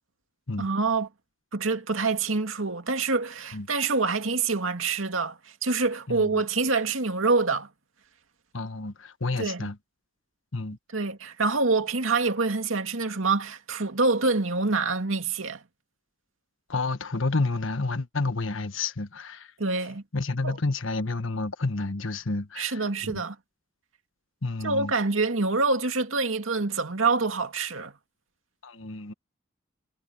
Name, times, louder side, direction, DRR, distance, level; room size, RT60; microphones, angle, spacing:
voice 1, 0.6-1.1 1.5-7.7 9.4-9.7 10.9-15.6 19.6-20.0 20.4-20.6 22.6-23.4 24.6-27.9, right 3 dB, 80° right, 2.4 m, -26 dB
voice 2, 6.1-6.4 8.5-9.7 10.5-10.8 16.7-19.5 20.1-23.2 24.4-24.9 28.6-29.1, left 3 dB, 75° left, 1.4 m, -30 dB
head